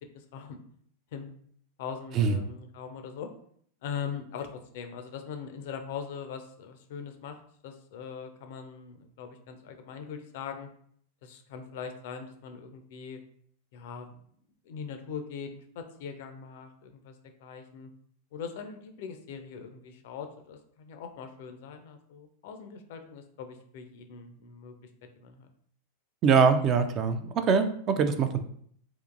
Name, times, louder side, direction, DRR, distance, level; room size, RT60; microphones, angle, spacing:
voice 1, 0.1-0.6 1.1-1.3 1.8-3.3 3.8-7.4 7.6-10.7 11.2-13.2 13.7-14.2 14.6-17.9 18.3-24.7 25.2-25.5, left 6 dB, 50° left, 6 dB, 0.4 m, -41 dB
voice 2, 26.2-28.4, right 5 dB, 35° right, 9 dB, 0.3 m, -23 dB
3.6 x 2.5 x 2.5 m, 0.63 s
figure-of-eight pair, 90°, 0 cm